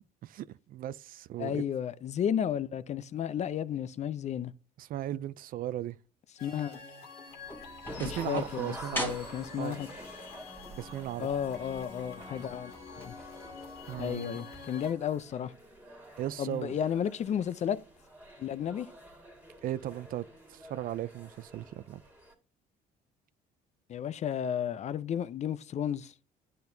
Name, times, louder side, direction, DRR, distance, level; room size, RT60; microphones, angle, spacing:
voice 1, 0.2-1.6 4.8-6.0 8.0-9.3 9.6-9.8 10.8-11.3 13.9-14.4 16.2-16.8 19.6-20.2 20.5-22.0, right 12 dB, 55° right, 0.4 m, -37 dB
voice 2, 1.4-4.5 6.4-6.8 8.0-9.9 11.2-13.1 14.0-15.5 16.4-17.8 18.4-18.9 23.9-26.1, left 9 dB, 40° left, 0.5 m, -33 dB
sound 1, 6.4-14.9, left 4 dB, 80° left, 2.1 m, -47 dB
sound 2, 7.3-14.2, equal, 10° left, 1.5 m, -44 dB
sound 3, 7.9-22.3, right 1 dB, 10° right, 1.9 m, -50 dB
10.5 x 4.3 x 2.7 m
cardioid pair, 110°, 17 cm